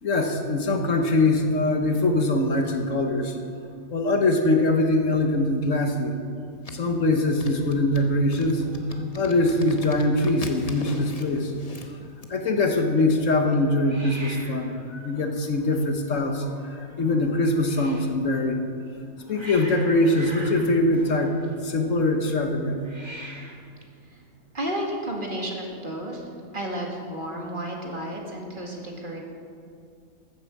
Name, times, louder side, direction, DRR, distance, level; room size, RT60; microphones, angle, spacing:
voice 1, 0.0-3.4 3.9-6.2 6.7-8.6 9.1-11.5 12.3-14.8 15.0-18.6 19.3-21.4 21.6-22.8, left 2 dB, 65° left, 4 dB, 1.6 m, -23 dB
sound 1, 6.6-12.3, left 2 dB, 30° left, 1.0 m, -41 dB
Hiss, 7.5-8.9 9.1-9.6 9.9-10.0 10.1-10.8 13.8-18.1 18.9-21.8 22.8-23.7, right 1 dB, 20° right, 1.9 m, -44 dB
voice 2, 24.5-29.2, right 1 dB, 35° right, 0 dB, 2.0 m, -32 dB
14.5 x 8.8 x 7.3 m, 2.3 s
omnidirectional pair, 1.4 m